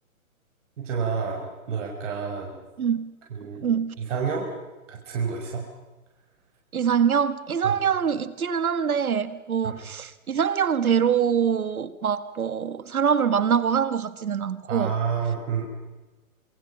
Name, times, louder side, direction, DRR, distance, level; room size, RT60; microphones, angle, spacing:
voice 1, 0.8-2.6 3.3-3.7 4.0-4.5 4.9-5.6 7.6-7.7 9.6-9.8 14.7-15.7, right 6 dB, 60° right, 5.7 m, -29 dB
voice 2, 2.8-3.1 3.4-3.9 6.7-14.9, right 7 dB, 90° right, 1.8 m, -24 dB
27.0 x 23.5 x 5.8 m
hypercardioid pair, 140°, 42 cm